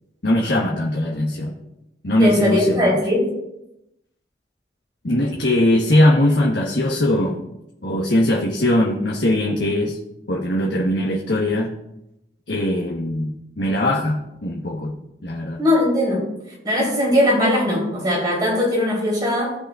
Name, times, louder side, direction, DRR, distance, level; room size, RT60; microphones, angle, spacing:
voice 1, 0.2-1.5 2.0-3.0 5.0-7.4 7.8-10.0 10.3-11.7 12.5-14.9 15.2-15.6, left 1 dB, 75° left, -3 dB, 1.3 m, -20 dB
voice 2, 2.2-3.3 15.6-16.2 16.6-19.6, left 1 dB, 25° right, -4 dB, 3.6 m, -19 dB
16.0 x 5.8 x 2.5 m, 0.87 s
head